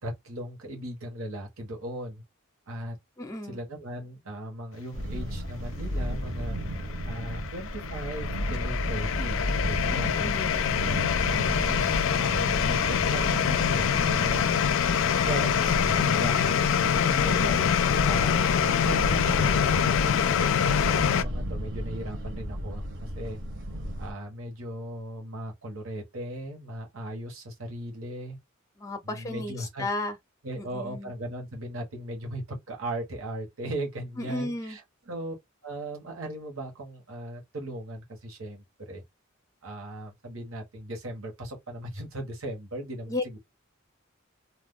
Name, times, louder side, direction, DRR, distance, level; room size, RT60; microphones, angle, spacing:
voice 1, 0.0-2.2 2.7-3.0 3.5-6.6 7.0-9.4 9.7-10.2 10.9-17.6 18.0-18.3 18.6-23.4 24.0-28.4 29.0-29.9 30.4-34.8 35.1-35.3 35.6-39.0 39.6-43.4, right 1 dB, 80° right, 1.3 m, -38 dB
voice 2, 3.2-3.6 10.2-10.6 17.4-17.7 18.1-18.5 28.8-30.2 30.5-31.1 34.2-34.8 43.1-43.2, left 2 dB, 15° left, 0.6 m, -34 dB
sound 1, 4.9-24.1, equal, 60° right, 1.0 m, -33 dB
sound 2, 6.6-21.2, left 8 dB, 65° left, 0.3 m, -25 dB
2.6 x 2.3 x 3.6 m
head